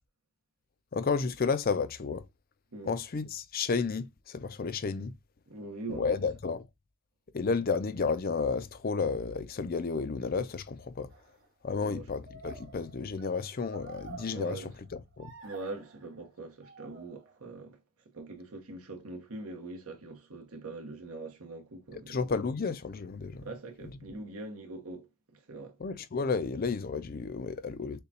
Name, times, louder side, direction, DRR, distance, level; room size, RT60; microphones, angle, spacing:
voice 1, 0.9-2.2 2.8-5.1 5.9-6.7 7.3-11.1 11.6-14.6 14.9-15.3 22.1-23.5 25.8-28.0, left 4 dB, 40° left, 0.5 m, -32 dB
voice 2, 5.5-6.2 11.8-12.0 14.3-14.7 15.4-17.8 18.1-22.2 23.4-25.1 25.5-25.8, right 2 dB, 80° right, 1.2 m, -42 dB
Funny Souls Scary Variations, 11.1-11.5 12.3-14.9 15.2-16.2 16.6-17.5, right 4 dB, 60° right, 2.2 m, -50 dB
6.7 x 2.3 x 2.8 m
head